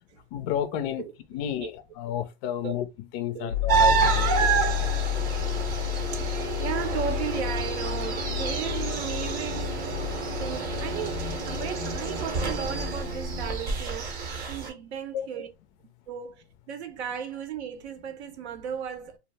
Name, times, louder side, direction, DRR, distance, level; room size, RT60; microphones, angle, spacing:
voice 1, 0.3-1.0 1.3-2.8 3.1-4.3 15.1-15.3, left 10 dB, 35° left, 0.4 m, -31 dB
voice 2, 1.0-1.7 2.6-2.7 3.2-3.6 4.4-4.7 6.1-9.9 10.3-15.5 16.1-19.2, right 8 dB, 85° right, 0.8 m, -36 dB
sound 1, 3.5-13.6, left 10 dB, 90° left, 0.6 m, -31 dB
sound 2, 3.7-14.7, right 6 dB, 30° right, 0.7 m, -29 dB
2.4 x 2.0 x 3.2 m
supercardioid pair, 145°, 32 cm